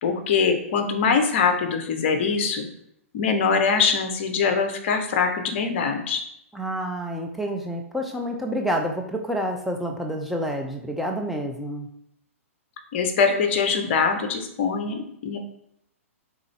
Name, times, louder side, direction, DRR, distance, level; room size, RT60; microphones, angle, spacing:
voice 1, 0.0-2.7 3.1-6.2 12.9-15.4, left 5 dB, 50° left, 5 dB, 0.7 m, -23 dB
voice 2, 6.5-11.9, equal, ahead, 2 dB, 0.4 m, -28 dB
3.9 x 3.4 x 3.2 m, 0.76 s
figure-of-eight pair, 115°, 8 cm